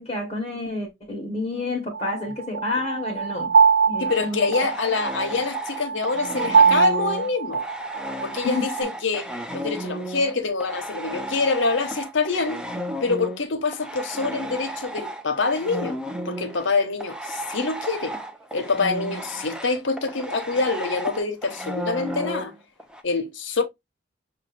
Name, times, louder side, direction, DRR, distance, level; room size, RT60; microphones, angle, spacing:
voice 1, 0.0-3.5 3.9-4.7 8.4-8.7, left 2 dB, 30° left, 1.0 m, -29 dB
sound 1, 1.9-8.8, right 6 dB, 65° right, 0.7 m, -22 dB
voice 2, 4.0-7.6 8.2-9.3 9.5-12.6 13.0-16.0 16.2-18.1 18.5-22.5 23.0-23.6, left 4 dB, 65° left, 0.9 m, -25 dB
sound 2, 4.1-10.3 10.6-23.0, right 1 dB, 5° right, 0.4 m, -34 dB
6.1 x 2.3 x 3.1 m
head